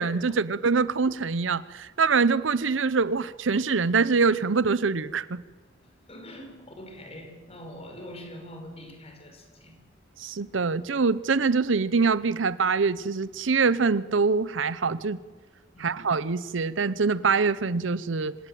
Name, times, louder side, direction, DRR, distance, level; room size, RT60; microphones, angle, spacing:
voice 1, 0.0-5.4 10.2-15.2 15.8-18.3, right 4 dB, 75° right, 17 dB, 0.7 m, -24 dB
voice 2, 5.8-9.8 15.7-16.0, equal, 35° left, 4 dB, 5.3 m, -44 dB
26.5 x 17.0 x 9.1 m, 1.3 s
head